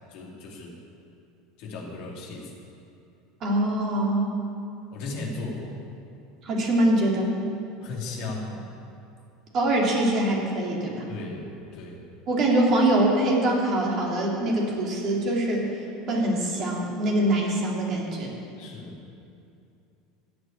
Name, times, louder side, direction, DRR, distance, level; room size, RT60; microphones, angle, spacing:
voice 1, 0.1-0.8 1.6-2.5 4.9-5.8 7.8-8.6 11.1-12.1 18.6-19.0, left 3 dB, 55° left, -2 dB, 2.8 m, -36 dB
voice 2, 3.4-4.3 6.4-7.3 9.5-11.0 12.3-15.7 16.1-18.3, right 1 dB, 45° right, -2 dB, 3.3 m, -23 dB
16.0 x 6.2 x 8.9 m, 2.6 s
figure-of-eight pair, 75°, 0 cm